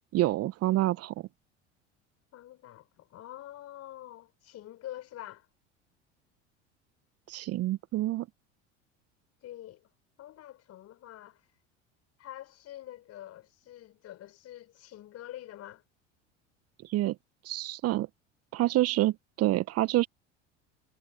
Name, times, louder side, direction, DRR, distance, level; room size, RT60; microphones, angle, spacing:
voice 1, 0.1-1.3 7.3-8.3 16.8-17.2 17.4-18.1 18.5-20.1, right 16 dB, 40° right, 1.4 m, -27 dB
voice 2, 2.3-5.5 9.4-9.9 10.2-11.5 12.2-15.8, left 13 dB, 45° left, 6.2 m, -46 dB
figure-of-eight pair, 70°, 36 cm